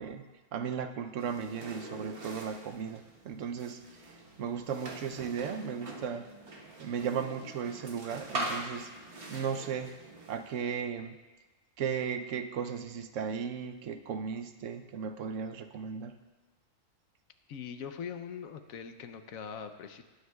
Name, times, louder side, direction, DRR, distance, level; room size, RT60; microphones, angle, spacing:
voice 1, 0.0-4.1 4.4-6.3 6.8-8.9 9.3-9.9 10.3-11.2 11.8-16.2, right 7 dB, 70° right, 8 dB, 1.0 m, -36 dB
sound 1, 1.2-10.6, right 1 dB, 45° right, 1.4 m, -43 dB
voice 2, 17.5-20.0, left 7 dB, 85° left, 8 dB, 1.2 m, -42 dB
19.5 x 9.4 x 2.3 m, 1.2 s
omnidirectional pair, 1.4 m